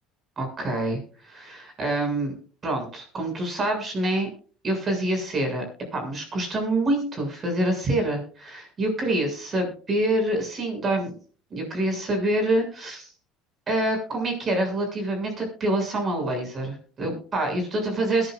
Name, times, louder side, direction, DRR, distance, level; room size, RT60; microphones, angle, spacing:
voice 1, 0.4-2.3 2.6-4.3 4.6-5.6 5.9-11.1 11.5-13.1 13.7-18.3, right 1 dB, 35° right, 4 dB, 7.1 m, -26 dB
22.0 x 11.0 x 2.6 m, 0.41 s
supercardioid pair, 105°, 0 cm